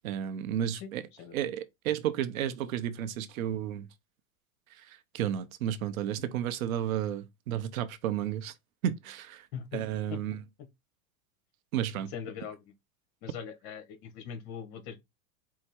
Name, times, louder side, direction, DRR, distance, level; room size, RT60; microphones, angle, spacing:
voice 1, 0.0-1.0 1.3-3.9 4.8-8.5 8.8-9.5 9.7-10.4 11.7-12.1, right 10 dB, 75° right, 0.8 m, -32 dB
voice 2, 1.2-1.5 9.5-9.8 10.1-10.7 12.1-12.7 13.2-15.0, left 7 dB, 50° left, 1.3 m, -41 dB
4.7 x 2.2 x 4.3 m
supercardioid pair, 140°, 41 cm